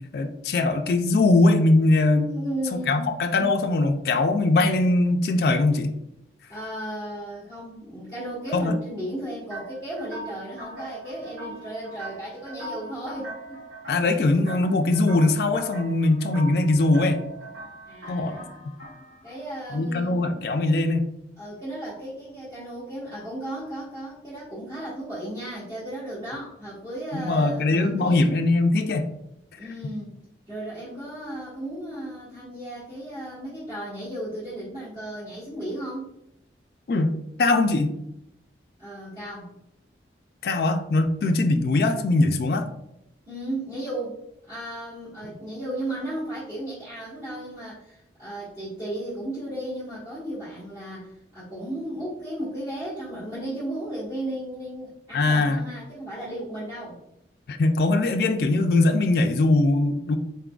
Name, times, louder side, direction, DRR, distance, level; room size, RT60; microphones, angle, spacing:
voice 1, 0.1-2.3 2.7-5.9 8.5-8.8 13.9-17.2 18.1-18.4 19.7-21.1 27.1-29.1 36.9-37.1 37.4-37.9 40.4-42.7 55.1-55.6 57.5-60.2, left 2 dB, 55° left, 6 dB, 0.3 m, -21 dB
voice 2, 2.3-3.1 6.5-13.6 17.9-18.5 19.2-20.2 21.4-28.3 29.6-30.1 30.5-36.1 38.8-39.5 43.2-44.2 44.5-57.0, right 1 dB, 20° right, -13 dB, 1.3 m, -35 dB
sound 1, 9.5-19.4, right 1 dB, 80° right, 1.4 m, -41 dB
4.0 x 3.7 x 2.3 m, 0.82 s
head